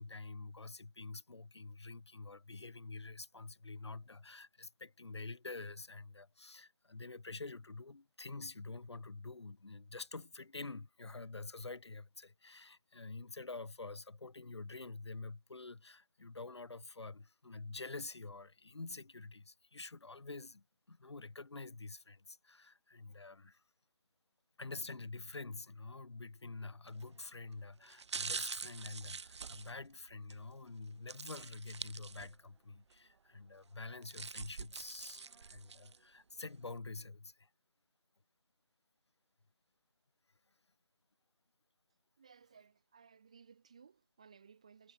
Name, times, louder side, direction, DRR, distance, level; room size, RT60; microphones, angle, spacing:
voice 1, 0.0-23.6 24.6-37.5, left 3 dB, 75° left, 1.1 m, -47 dB
sound 1, 26.9-27.2 27.8-30.4 31.1-32.5 32.9-33.0 33.8-36.0 36.5-36.6, right 5 dB, 80° right, 0.4 m, -45 dB
voice 2, 42.2-44.9, right 6 dB, 15° right, 0.8 m, -61 dB
figure-of-eight pair, 175°, 14 cm